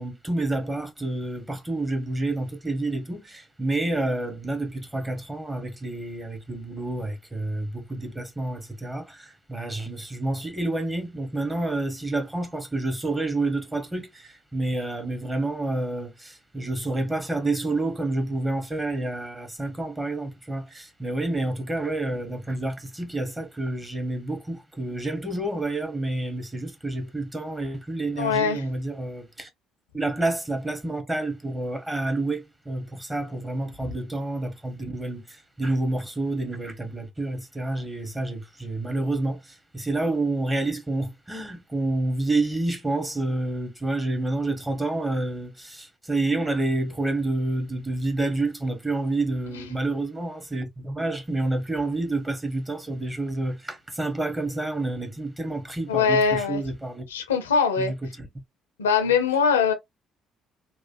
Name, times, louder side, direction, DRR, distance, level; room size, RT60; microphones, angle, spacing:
voice 1, 0.0-29.5 29.9-57.1 57.8-58.3, right 2 dB, 15° right, 1.1 m, -29 dB
voice 2, 28.2-28.6 49.5-49.6 55.9-56.6 57.1-57.9 58.8-59.7, left 6 dB, 80° left, 0.5 m, -22 dB
3.0 x 2.3 x 2.5 m
figure-of-eight pair, 50°, 0 cm